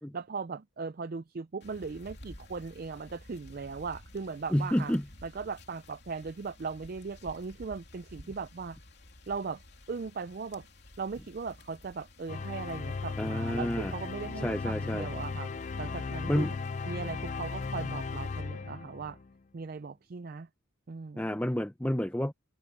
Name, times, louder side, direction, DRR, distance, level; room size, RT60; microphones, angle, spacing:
voice 1, 0.1-4.9 5.2-8.8 9.3-9.6 9.9-10.7 11.0-15.5 15.8-16.5 16.9-19.2 19.5-20.5 20.9-21.4, right 4 dB, 45° right, 0.4 m, -38 dB
sound 1, 1.6-18.4, left 1 dB, 55° left, 3.4 m, -54 dB
voice 2, 4.5-5.0 13.2-13.9 14.4-15.1 16.3-16.5 21.2-22.3, equal, 10° left, 0.7 m, -29 dB
sound 2, 12.3-19.3, left 4 dB, 35° left, 0.4 m, -36 dB
head